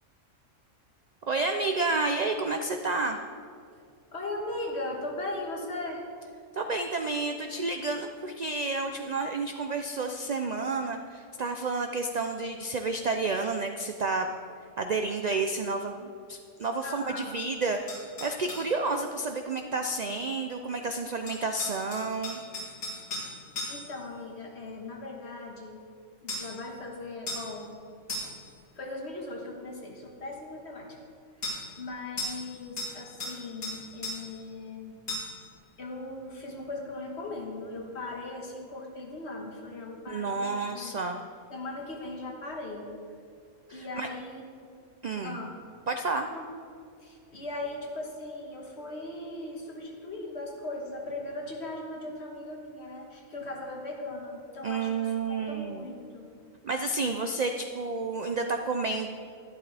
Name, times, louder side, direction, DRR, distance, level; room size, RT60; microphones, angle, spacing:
voice 1, 1.3-3.2 6.5-14.3 14.8-22.4 40.1-41.2 43.7-44.1 45.0-45.4 45.9-46.3 54.6-55.8 56.6-59.1, right 3 dB, 65° right, 5 dB, 0.4 m, -30 dB
voice 2, 4.1-6.0 16.8-17.4 23.7-25.9 26.2-27.7 28.7-31.0 31.8-35.0 35.8-40.9 41.5-42.9 43.7-44.5 45.2-45.5 46.3-46.5 47.0-56.3, left 2 dB, 55° left, 0 dB, 1.7 m, -38 dB
sound 1, 17.9-18.7 21.3-24.0 26.3-26.6 27.3-27.5 28.1-28.5 31.4-31.6 32.2-32.5 32.8-33.4 33.6-34.2 35.1-35.4, left 1 dB, 90° left, 3.4 m, -36 dB
12.0 x 11.5 x 3.4 m, 2.3 s
omnidirectional pair, 1.4 m